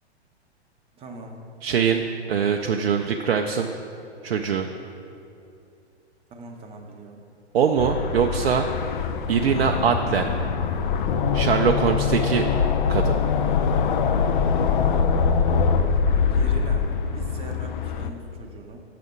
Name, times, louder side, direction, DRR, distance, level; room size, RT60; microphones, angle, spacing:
voice 1, 0.9-1.4 6.3-7.2 16.3-16.9 17.1-18.8, right 2 dB, 15° right, 2 dB, 0.7 m, -40 dB
voice 2, 1.6-3.7 4.2-4.7 7.5-9.0 9.3-10.5 11.3-12.5 12.9-13.2, right 7 dB, 65° right, 3 dB, 0.4 m, -23 dB
sound 1, 7.8-18.1, left 6 dB, 50° left, 0.4 m, -23 dB
6.6 x 4.2 x 6.1 m, 2.7 s
figure-of-eight pair, 105°, 33 cm